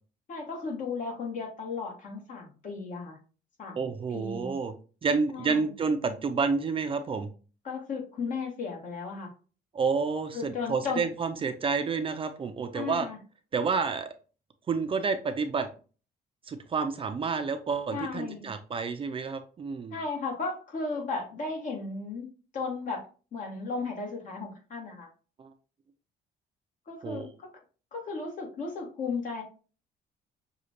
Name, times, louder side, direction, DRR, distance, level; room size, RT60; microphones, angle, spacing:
voice 1, 0.3-3.2 3.6-4.5 5.3-5.7 7.6-9.3 10.3-11.0 12.7-13.2 17.9-18.5 19.9-22.3 22.5-23.1 23.3-25.1 26.9-27.5 27.9-29.4, left 4 dB, 50° left, 1 dB, 1.6 m, -35 dB
voice 2, 3.8-4.7 5.0-7.3 9.7-13.1 13.5-14.1 14.7-15.7 16.5-19.9 25.4-25.5 27.0-27.3, right 5 dB, 30° right, 7 dB, 0.5 m, -29 dB
6.4 x 2.4 x 2.9 m, 0.36 s
cardioid pair, 110°, 17 cm